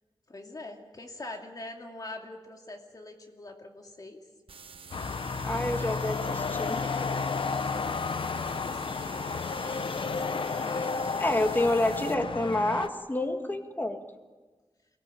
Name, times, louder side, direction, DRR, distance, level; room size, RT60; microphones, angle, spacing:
voice 1, 0.3-4.2 8.1-9.0 9.8-10.9, left 2 dB, 40° left, 2 dB, 2.4 m, -44 dB
sound 1, 4.5-12.1, right 5 dB, 75° right, 1.0 m, -48 dB
sound 2, 4.9-12.9, left 4 dB, 65° left, 0.9 m, -32 dB
voice 2, 5.4-6.8 11.2-14.0, left 1 dB, 20° left, 5 dB, 2.1 m, -28 dB
23.0 x 17.0 x 8.6 m, 1.3 s
wide cardioid pair, 85°, 9 cm